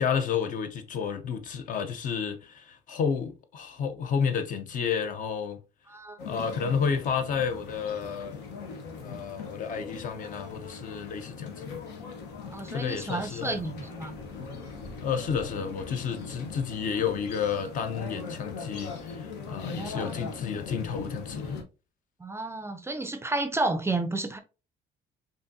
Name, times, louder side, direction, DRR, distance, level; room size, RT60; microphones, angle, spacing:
voice 1, 0.0-5.6 6.3-8.4 9.0-11.8 12.7-13.6 15.0-21.6, left 6 dB, 50° left, 0.6 m, -31 dB
voice 2, 5.9-6.2 12.5-14.1 19.6-20.3 22.2-24.4, right 2 dB, 15° right, 0.4 m, -32 dB
sound 1, 6.2-21.6, left 4 dB, 85° left, 0.9 m, -40 dB
5.3 x 2.6 x 2.6 m
cardioid pair, 110°, 17 cm